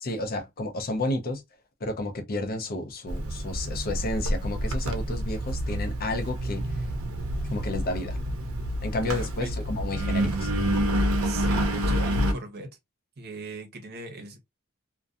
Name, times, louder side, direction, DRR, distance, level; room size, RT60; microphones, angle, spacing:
voice 1, 0.0-1.4 1.8-6.7 7.5-8.2 8.8-10.5, left 2 dB, 45° left, 0.5 m, -31 dB
Engine, 3.1-12.3, equal, 85° right, 0.5 m, -28 dB
voice 2, 9.0-9.5 11.1-12.7 13.2-14.4, right 2 dB, 50° right, 0.8 m, -38 dB
2.6 x 2.2 x 2.3 m
head